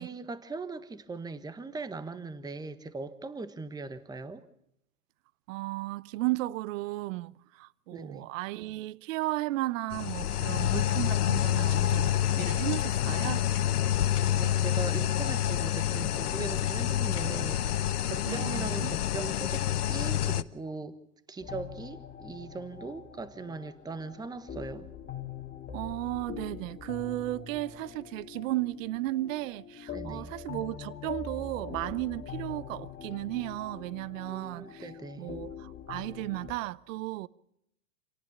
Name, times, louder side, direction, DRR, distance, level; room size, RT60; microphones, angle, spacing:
voice 1, 0.0-4.4 7.9-8.3 14.3-21.0 21.3-24.9 29.9-30.3 34.1-35.4, right 3 dB, 10° right, 1.3 m, -40 dB
voice 2, 5.5-13.5 18.3-18.9 25.7-34.9 35.2-37.3, right 18 dB, 60° right, 0.8 m, -34 dB
sound 1, 9.9-20.4, left 11 dB, 90° left, 1.1 m, -28 dB
sound 2, 21.4-36.5, left 7 dB, 25° left, 2.6 m, -43 dB
28.0 x 18.0 x 7.2 m
hypercardioid pair, 120°, 44 cm